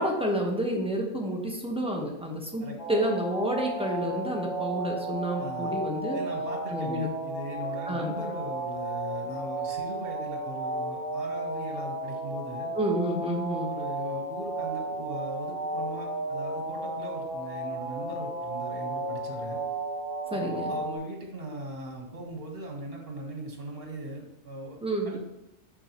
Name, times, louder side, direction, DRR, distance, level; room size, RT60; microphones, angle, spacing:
voice 1, 0.0-6.2 6.7-7.1 7.9-8.2 12.7-13.7 20.3-20.7 24.8-25.2, right 1 dB, 5° right, -1 dB, 1.2 m, -29 dB
sound 1, 2.8-21.0, right 1 dB, 70° left, 2.2 m, -33 dB
voice 2, 5.4-5.8 6.1-12.7 13.7-19.6 20.3-24.8 25.0-25.2, right 2 dB, 45° right, 1 dB, 1.8 m, -39 dB
11.0 x 4.6 x 3.1 m, 0.94 s
omnidirectional pair, 1.3 m